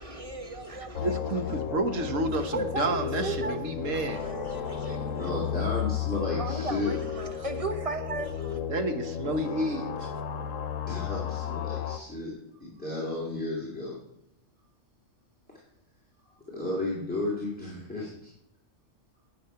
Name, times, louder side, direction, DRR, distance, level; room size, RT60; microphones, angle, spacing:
voice 1, 0.0-1.6 2.3-5.3 5.6-5.8 6.1-8.7, right 2 dB, 25° right, 1.2 m, -36 dB
sound 1, 0.9-12.0, left 9 dB, 80° left, 1.1 m, -33 dB
voice 2, 1.0-4.2 8.7-10.1, right 2 dB, 75° right, 1.5 m, -30 dB
voice 3, 4.8-6.9 10.8-12.3 12.6-14.0 16.3-18.3, left 2 dB, 5° left, 2.7 m, -33 dB
11.0 x 8.7 x 5.7 m
omnidirectional pair, 1.3 m